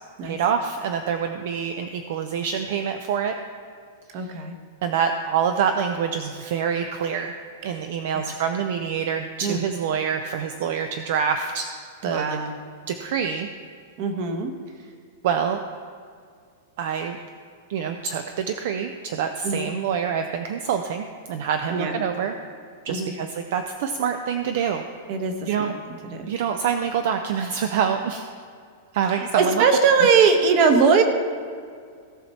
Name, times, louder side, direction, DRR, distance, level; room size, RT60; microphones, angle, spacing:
voice 1, 0.2-3.4 4.1-4.4 4.8-7.3 7.6-11.7 12.0-12.4 12.9-13.5 15.2-15.6 16.8-17.2 17.7-22.4 22.8-24.8 25.5-25.7 26.3-28.3 28.9-29.6, right 7 dB, 50° right, 6 dB, 0.5 m, -26 dB
voice 2, 4.1-4.5 8.1-8.3 9.4-9.6 12.0-12.5 14.0-14.5 19.4-19.7 21.7-22.0 22.9-23.1 25.1-25.7 26.1-26.3 29.1-31.0, right 5 dB, 30° right, 6 dB, 1.0 m, -21 dB
17.0 x 5.9 x 4.2 m, 2.2 s
supercardioid pair, 175°, 0 cm